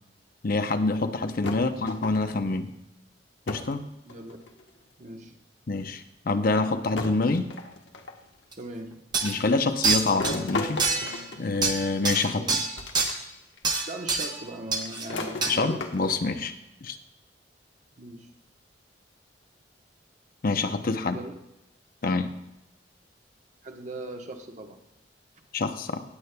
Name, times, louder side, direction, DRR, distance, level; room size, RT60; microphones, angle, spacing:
voice 1, 0.4-2.7 3.5-3.9 5.7-7.5 9.2-12.4 15.5-16.5 16.8-17.0 20.4-21.2 22.0-22.3 25.5-26.0, left 3 dB, 55° left, 8 dB, 0.7 m, -26 dB
sound 1, 1.4-2.4 3.5-3.8 4.1-4.7 5.7-5.8 7.0-8.3 10.2-12.0 12.8-13.2 13.6-13.7 14.8-16.3, left 2 dB, 85° left, 1.2 m, -35 dB
voice 2, 4.0-4.4 5.0-5.4 8.6-9.1 12.4-12.6 13.9-15.9 18.0-18.3 21.1-21.4 23.6-24.8, right 1 dB, 45° right, 4 dB, 1.1 m, -39 dB
sound 2, 8.5-8.6 9.1-9.4 9.8-10.4 10.8-11.2 11.6-13.1 13.6-14.4 14.7-15.1 15.4-15.5, right 4 dB, 25° right, 1.0 m, -26 dB
18.5 x 8.2 x 2.2 m, 0.88 s
head